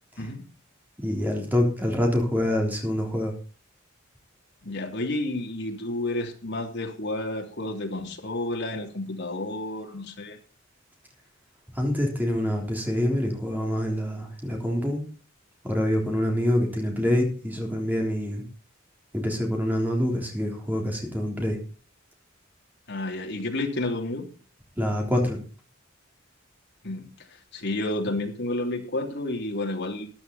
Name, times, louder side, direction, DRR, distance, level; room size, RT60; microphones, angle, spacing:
voice 1, 1.0-3.3 11.7-15.0 15.6-18.4 19.1-21.6 24.8-25.4, left 1 dB, 10° right, 1 dB, 3.6 m, -26 dB
voice 2, 4.6-10.4 22.9-24.3 26.8-27.1 27.5-30.1, left 2 dB, 60° left, 2 dB, 2.9 m, -30 dB
13.5 x 11.5 x 4.2 m, 0.37 s
head